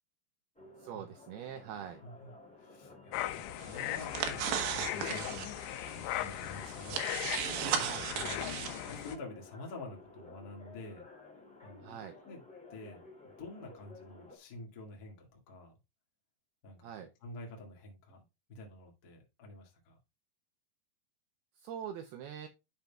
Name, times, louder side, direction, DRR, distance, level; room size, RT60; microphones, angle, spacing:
sound 1, 0.5-14.4, left 3 dB, 5° left, 0.5 m, -54 dB
voice 1, 0.8-2.0 7.8-8.1 11.8-12.2 16.8-17.1 21.6-22.5, right 9 dB, 85° right, 2.2 m, -43 dB
voice 2, 2.0-2.3 2.6-5.5 5.9-11.1 11.6-12.4 12.7-15.8 16.6-20.0, left 2 dB, 60° left, 1.0 m, -49 dB
sound 2, 3.1-9.2, left 13 dB, 85° left, 2.9 m, -38 dB
sound 3, 3.6-9.1, right 8 dB, 70° right, 2.5 m, -37 dB
11.5 x 5.3 x 2.3 m
omnidirectional pair, 5.1 m